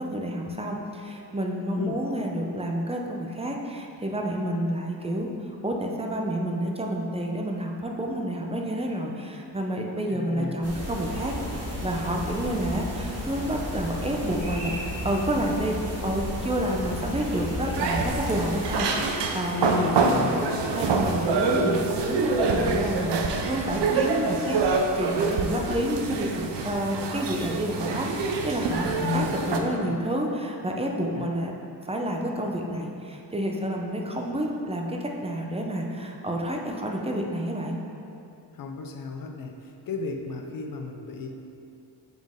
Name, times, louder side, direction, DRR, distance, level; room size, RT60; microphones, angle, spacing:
voice 1, 0.0-5.3 5.6-11.3 11.8-14.7 15.0-15.8 16.0-31.5 31.8-37.8, right 1 dB, 15° right, 0 dB, 0.6 m, -29 dB
voice 2, 10.1-10.6 19.5-20.6 28.9-29.9 31.1-31.2 38.6-39.6 39.9-41.4, left 4 dB, 55° left, 4 dB, 0.6 m, -33 dB
sound 1, 10.6-18.8, equal, 35° right, 1.3 m, -33 dB
sound 2, 17.7-29.6, right 4 dB, 90° right, 0.6 m, -26 dB
7.3 x 3.8 x 3.7 m, 2.6 s
cardioid pair, 105°, 41 cm